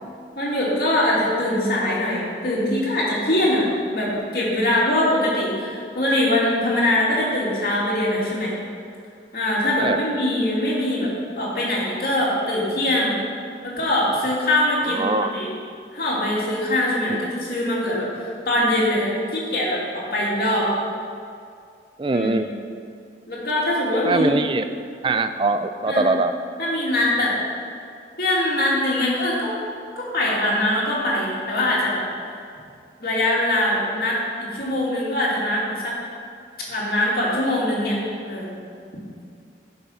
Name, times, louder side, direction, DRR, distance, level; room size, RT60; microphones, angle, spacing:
voice 1, 0.4-3.6 3.9-8.5 9.3-11.1 11.4-13.1 13.6-15.5 15.9-20.7 22.1-22.5 23.3-24.3 25.9-26.1 26.6-27.4 28.2-29.5 29.9-32.0 33.0-35.9 36.7-38.0 38.2-38.5, left 1 dB, 55° left, -5 dB, 2.6 m, -22 dB
voice 2, 14.9-15.3 17.1-17.2 22.0-22.5 24.0-24.7 25.0-26.3, right 3 dB, 30° right, 9 dB, 0.4 m, -22 dB
10.5 x 5.6 x 5.8 m, 2.3 s
head